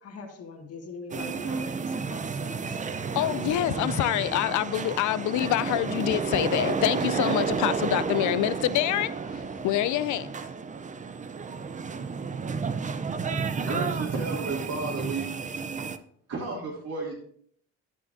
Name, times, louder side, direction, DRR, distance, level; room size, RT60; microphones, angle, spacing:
voice 1, 0.0-3.1, left 4 dB, 50° left, 1.6 m, -43 dB
sound 1, 1.1-16.0, right 5 dB, 25° right, 0.5 m, -31 dB
voice 2, 3.1-10.3, left 14 dB, 75° left, 0.5 m, -26 dB
voice 3, 13.6-15.3 16.3-17.1, right 3 dB, 60° right, 2.6 m, -32 dB
11.0 x 8.3 x 2.6 m
cardioid pair, 90°, 30 cm